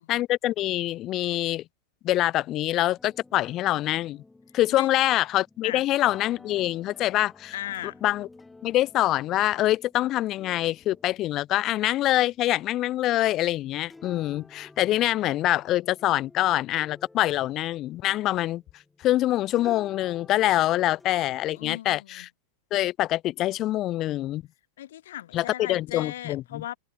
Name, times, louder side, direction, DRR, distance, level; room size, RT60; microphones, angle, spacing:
voice 1, 0.1-1.6 2.0-4.2 4.5-7.5 8.0-8.3 8.6-18.6 19.0-22.3 22.7-24.4 25.3-26.6, left 15 dB, 40° left, 0.5 m, -25 dB
sound 1, 3.0-19.2 19.5-21.8, left 3 dB, 10° left, 5.9 m, -53 dB
voice 2, 7.5-8.0 21.5-22.3 24.8-26.8, left 13 dB, 75° left, 2.5 m, -37 dB
hypercardioid pair, 120°, 0 cm